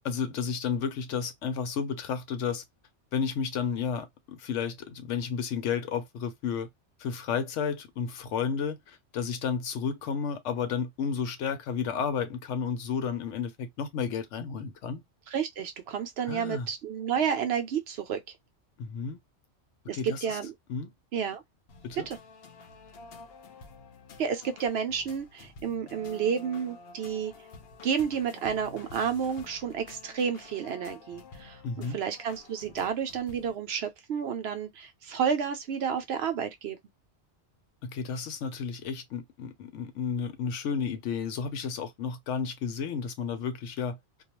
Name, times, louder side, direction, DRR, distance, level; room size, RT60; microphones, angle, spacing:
voice 1, 0.0-2.6 3.1-6.7 7.0-15.0 16.3-16.7 18.8-19.2 19.9-20.4 20.7-20.9 21.8-22.1 31.6-32.0 37.8-44.2, left 6 dB, 85° left, 1.0 m, -32 dB
voice 2, 15.3-18.2 19.9-20.5 21.1-21.4 22.1-22.2 24.2-27.3 27.8-36.8, right 7 dB, 65° right, 0.8 m, -31 dB
sound 1, 21.7-33.6, left 4 dB, 65° left, 0.8 m, -50 dB
2.3 x 2.3 x 2.9 m
omnidirectional pair, 1.2 m